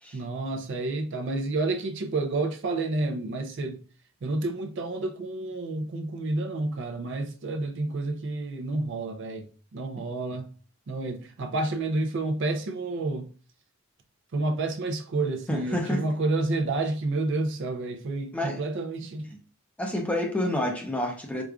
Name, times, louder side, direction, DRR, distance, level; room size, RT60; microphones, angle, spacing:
voice 1, 0.1-3.8 4.2-10.5 10.9-13.3 14.3-19.3, right 2 dB, 55° right, 0.4 m, -30 dB
voice 2, 15.5-16.0 18.3-18.6 19.3-19.4 19.8-21.4, left 1 dB, 5° left, 0.6 m, -29 dB
4.8 x 2.4 x 2.3 m
head